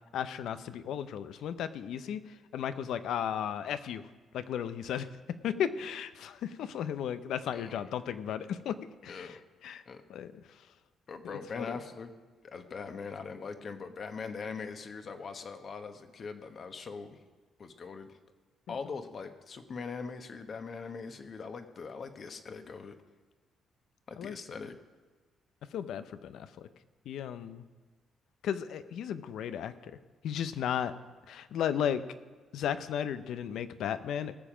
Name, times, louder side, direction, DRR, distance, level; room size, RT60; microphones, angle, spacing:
voice 1, 0.1-2.2 2.5-4.0 4.3-5.1 5.4-8.8 9.0-9.4 9.6-9.8 10.1-10.3 11.6-11.7 24.2-24.4 25.7-26.7 27.1-27.6 28.4-30.0 30.2-30.9 31.3-32.0 32.5-34.3, left 9 dB, 75° left, 12 dB, 0.7 m, -34 dB
voice 2, 9.1-9.4 9.8-10.0 11.1-12.1 12.4-17.2 17.6-18.2 18.7-23.0 24.1-24.7, left 5 dB, 50° left, 7 dB, 1.2 m, -41 dB
18.5 x 7.3 x 5.0 m, 1.4 s
cardioid pair, 90°, 0 cm